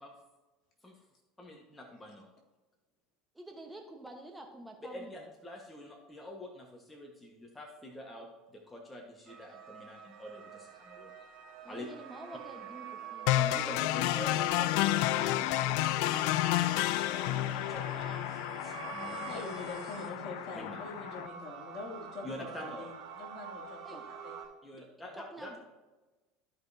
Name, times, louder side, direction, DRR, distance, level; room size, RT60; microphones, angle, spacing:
voice 1, 1.4-2.3 4.9-11.1 11.7-11.9 13.3-19.5 20.5-20.8 22.2-22.9 24.6-25.5, left 1 dB, 15° left, 0 dB, 1.4 m, -46 dB
voice 2, 3.3-5.1 11.6-13.3 23.8-24.0 25.1-25.6, right 1 dB, 10° right, 2 dB, 1.2 m, -48 dB
sound 1, 9.3-24.5, right 7 dB, 60° right, 2.7 m, -46 dB
sound 2, 13.3-21.3, left 15 dB, 70° left, 0.3 m, -31 dB
voice 3, 19.0-23.8 24.1-24.3, left 2 dB, 50° left, -2 dB, 2.6 m, -44 dB
14.0 x 5.2 x 2.8 m, 1.2 s
supercardioid pair, 100°, 0 cm